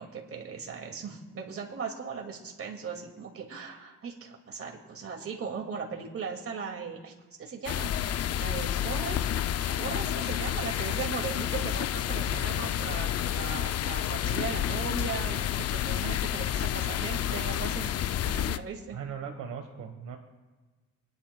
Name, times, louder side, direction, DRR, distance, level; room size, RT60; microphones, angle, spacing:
voice 1, 0.0-7.1 7.4-9.2 9.8-17.9 18.2-19.0, right 6 dB, 50° right, 1 dB, 2.3 m, -38 dB
sound 1, 7.7-18.6, left 10 dB, 55° left, 0.5 m, -30 dB
voice 2, 18.9-20.2, right 7 dB, 80° right, 4 dB, 1.4 m, -39 dB
25.5 x 10.5 x 2.3 m, 1.3 s
cardioid pair, 90°, 30 cm